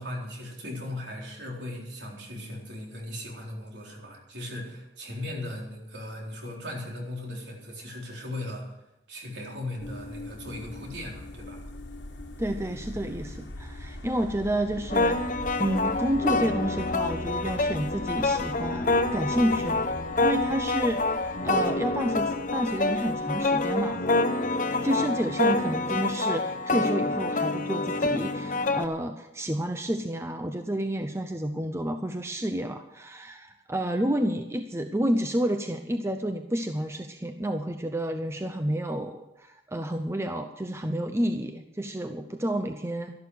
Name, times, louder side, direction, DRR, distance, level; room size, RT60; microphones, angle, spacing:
voice 1, 0.0-8.6 9.1-11.6, left 1 dB, 65° right, -1 dB, 4.0 m, -38 dB
sound 1, 9.8-23.9, left 2 dB, 70° left, 1.5 m, -41 dB
voice 2, 12.4-15.2 15.6-19.9 20.2-24.0 24.8-43.1, right 1 dB, 15° right, 6 dB, 0.6 m, -30 dB
sound 2, 14.9-28.9, left 2 dB, 45° left, 0.8 m, -27 dB
13.0 x 11.5 x 6.5 m, 0.91 s
head